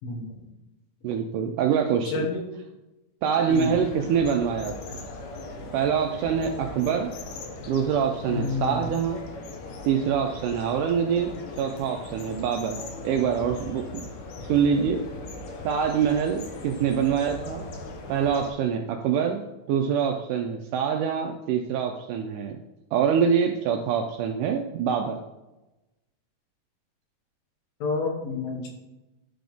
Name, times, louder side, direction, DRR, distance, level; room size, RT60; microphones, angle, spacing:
voice 1, 0.0-0.4 2.1-2.5 3.5-3.8 8.3-8.9 27.8-28.7, left 4 dB, 85° left, 1 dB, 3.1 m, -29 dB
voice 2, 1.0-2.3 3.2-5.0 5.7-7.1 7.7-9.2 9.8-11.3 11.6-13.8 14.5-15.0 15.6-17.7 18.1-22.6 22.9-25.2, right 7 dB, 85° right, 4 dB, 1.8 m, -25 dB
sound 1, 3.5-18.5, left 2 dB, 70° left, 2.1 m, -39 dB
11.0 x 3.8 x 3.5 m, 1.0 s
omnidirectional pair, 4.1 m